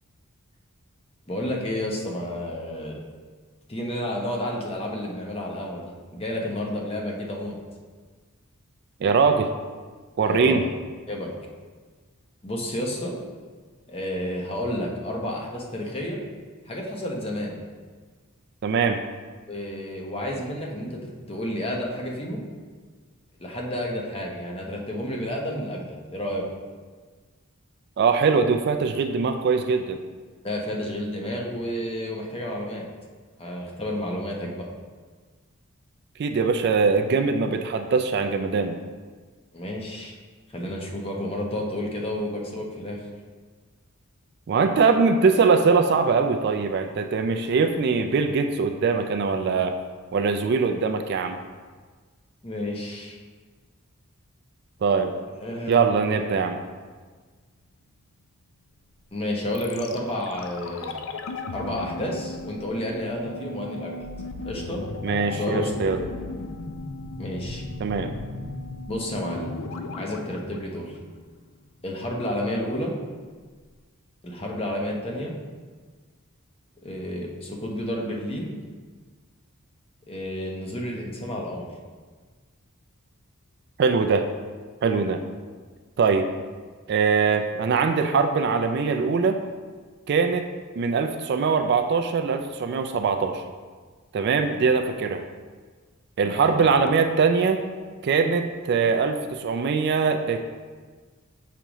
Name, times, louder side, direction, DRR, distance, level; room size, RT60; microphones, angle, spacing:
voice 1, 1.3-3.0 3.7-7.6 10.2-10.7 11.1-11.3 12.4-13.1 13.9-16.2 16.7-17.6 19.5-22.4 23.4-26.4 30.4-32.8 33.4-34.7 39.5-40.2 40.5-43.1 52.4-53.2 55.4-55.8 59.1-61.0 61.5-64.1 64.4-64.8 65.3-65.8 67.2-67.6 68.9-69.5 69.9-71.0 71.8-72.9 74.2-75.4 76.8-78.5 80.1-81.7 94.5-94.7 96.2-96.6, left 1 dB, 25° left, -1 dB, 0.8 m, -31 dB
voice 2, 9.0-9.5 10.2-10.6 18.6-19.0 28.0-30.0 36.2-38.8 44.5-49.7 50.1-51.4 54.8-55.1 55.7-56.6 65.0-66.0 67.8-68.2 83.8-84.3 84.8-85.2 86.0-86.3 86.9-89.4 90.1-90.5 90.8-93.4 94.1-95.2 96.2-97.6 98.0-100.4, right 5 dB, 50° right, 6 dB, 0.3 m, -22 dB
sound 1, 59.5-71.5 71.8-71.9, left 3 dB, 60° left, 0.4 m, -36 dB
6.6 x 4.9 x 3.0 m, 1.5 s
head